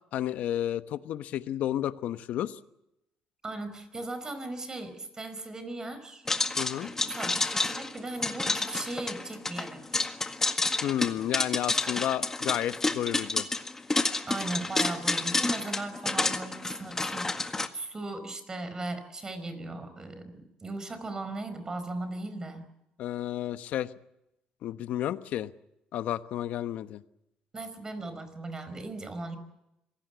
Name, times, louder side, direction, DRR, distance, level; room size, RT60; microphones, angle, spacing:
voice 1, 0.1-2.6 6.6-6.9 10.8-13.5 23.0-23.9 24.6-25.5 25.9-27.0, left 12 dB, 70° left, 12 dB, 1.1 m, -31 dB
voice 2, 3.4-6.3 6.8-10.1 14.2-22.6 27.5-29.4, right 2 dB, 25° right, 11 dB, 4.9 m, -38 dB
sound 1, 6.3-17.7, left 3 dB, 20° left, 1.8 m, -30 dB
26.0 x 18.0 x 8.2 m, 0.87 s
cardioid pair, 95°, 3 cm